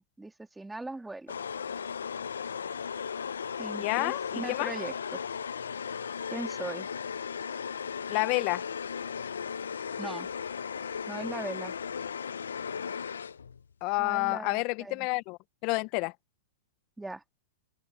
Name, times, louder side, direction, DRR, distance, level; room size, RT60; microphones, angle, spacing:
voice 1, 0.2-1.3 3.6-5.2 6.3-6.9 10.0-10.3 11.1-11.8 14.0-15.1 17.0-17.2, right 2 dB, 5° right, 3.1 m, -39 dB
sound 1, 1.3-13.6, left 7 dB, 85° left, 1.0 m, -36 dB
voice 2, 3.8-4.7 8.1-8.6 13.8-16.1, left 27 dB, 50° left, 1.6 m, -29 dB
open air
hypercardioid pair, 110°, 0 cm